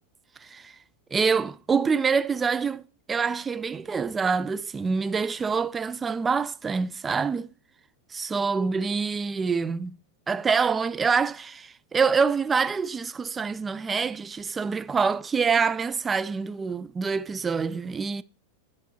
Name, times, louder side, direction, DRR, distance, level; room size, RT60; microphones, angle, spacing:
voice 1, 0.4-0.7 1.1-2.8 3.1-7.5 8.1-10.0 10.3-18.2, right 5 dB, 15° right, 0.3 m, -26 dB
11.0 x 5.8 x 3.1 m
figure-of-eight pair, 90°, 0 cm